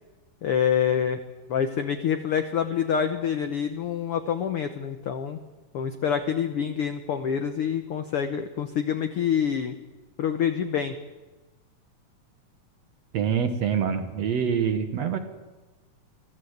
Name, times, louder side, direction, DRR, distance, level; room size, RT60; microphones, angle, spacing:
voice 1, 0.4-1.2 1.5-5.4 5.7-9.7 10.2-10.9, left 8 dB, 85° left, 8 dB, 1.2 m, -26 dB
voice 2, 13.1-15.2, right 7 dB, 60° right, 8 dB, 2.1 m, -25 dB
23.5 x 14.5 x 8.1 m, 1.2 s
omnidirectional pair, 3.9 m